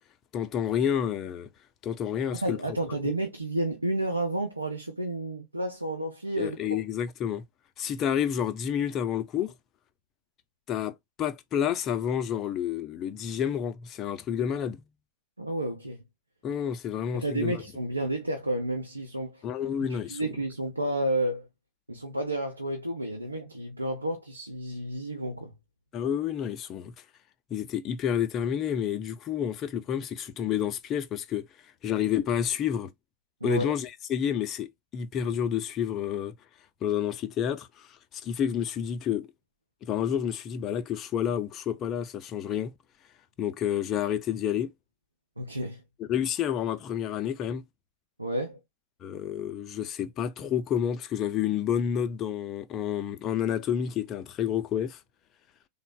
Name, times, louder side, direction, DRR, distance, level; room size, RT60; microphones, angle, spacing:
voice 1, 0.3-1.5 1.8-2.6 3.0-3.2 6.4-7.5 7.8-9.6 10.7-14.8 16.4-17.6 19.4-20.2 25.9-26.9 27.5-31.5 31.8-32.9 33.4-36.3 36.8-39.3 39.8-42.7 43.4-44.7 46.0-47.6 49.0-55.0, left 9 dB, 30° left, 0.4 m, -29 dB
voice 2, 2.4-6.6 15.4-16.0 17.1-19.4 19.9-21.5 21.9-25.5 33.4-33.7 45.4-45.8 48.2-48.6, right 1 dB, 85° right, 0.5 m, -31 dB
3.6 x 2.0 x 2.3 m
figure-of-eight pair, 90°, 0 cm